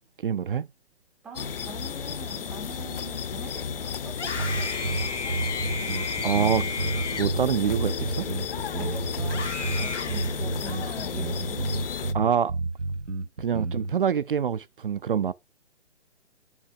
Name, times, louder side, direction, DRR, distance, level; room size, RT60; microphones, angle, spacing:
voice 1, 0.2-0.7 6.2-6.7 7.1-8.3 12.1-12.5 13.4-15.3, right 8 dB, 50° right, 0.5 m, -25 dB
voice 2, 1.2-5.3 8.8-11.7, right 3 dB, ahead, 0.5 m, -44 dB
sound 1, 1.3-12.1, left 7 dB, 50° left, 0.8 m, -33 dB
Screaming, 4.1-8.6 9.2-11.0, left 4 dB, 70° left, 2.0 m, -34 dB
sound 2, 4.4-14.0, right 2 dB, 85° right, 1.1 m, -30 dB
9.7 x 5.9 x 5.8 m
figure-of-eight pair, 140°, 35 cm